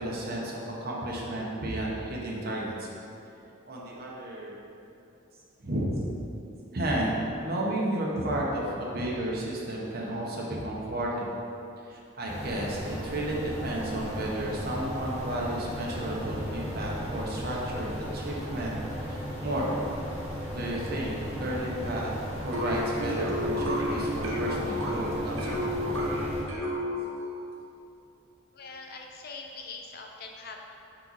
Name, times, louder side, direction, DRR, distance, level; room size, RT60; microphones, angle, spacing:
voice 1, 0.0-2.9 3.7-4.6 5.6-5.9 6.7-11.4 11.9-18.8 19.0-19.8 20.5-22.1 22.4-25.6 25.8-26.0, right 1 dB, 50° right, -4 dB, 1.0 m, -32 dB
sound 1, 12.2-26.4, equal, 30° left, 1.4 m, -36 dB
sound 2, 22.5-27.3, left 1 dB, 85° right, 1.1 m, -31 dB
voice 2, 28.5-30.6, left 4 dB, 50° left, 2 dB, 0.5 m, -42 dB
6.0 x 4.5 x 4.0 m, 2.8 s
head